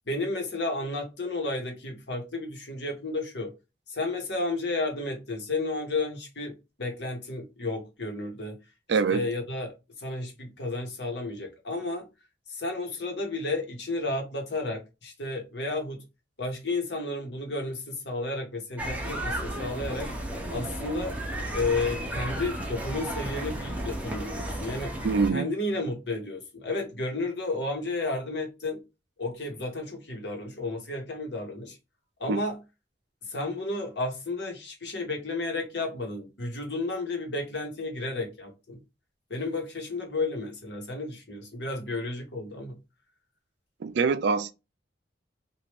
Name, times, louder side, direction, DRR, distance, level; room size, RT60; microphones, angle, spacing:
voice 1, 0.1-3.5 3.9-8.6 9.1-9.7 10.0-12.0 12.5-16.0 16.4-20.1 20.5-21.2 21.5-25.0 25.3-28.8 29.2-31.8 32.2-32.6 33.3-38.8 39.3-42.8, left 2 dB, 60° left, 1.1 m, -32 dB
voice 2, 8.9-9.2 25.0-25.5 32.3-32.4 43.8-44.5, right 5 dB, 60° right, 0.4 m, -24 dB
sound 1, 18.8-25.3, right 1 dB, 10° right, 0.6 m, -33 dB
3.0 x 2.5 x 3.3 m
head